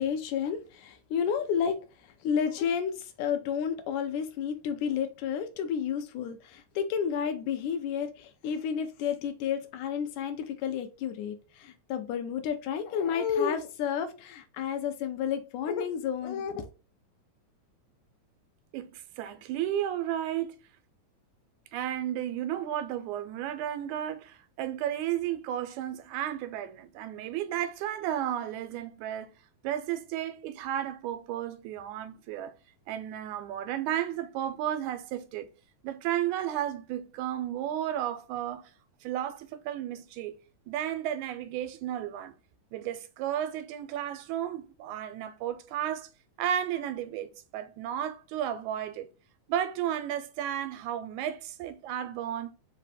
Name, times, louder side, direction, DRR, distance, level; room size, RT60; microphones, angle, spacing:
voice 1, 0.0-1.8 2.0-16.7, left 7 dB, 90° left, 2.1 m, -31 dB
voice 2, 18.7-20.6 21.7-29.3 29.6-32.5 32.9-35.5 35.8-38.7 39.0-40.4 40.7-42.3 42.7-46.1 46.4-49.1 49.5-52.5, right 11 dB, 85° right, 2.0 m, -33 dB
5.1 x 2.2 x 4.0 m
omnidirectional pair, 3.4 m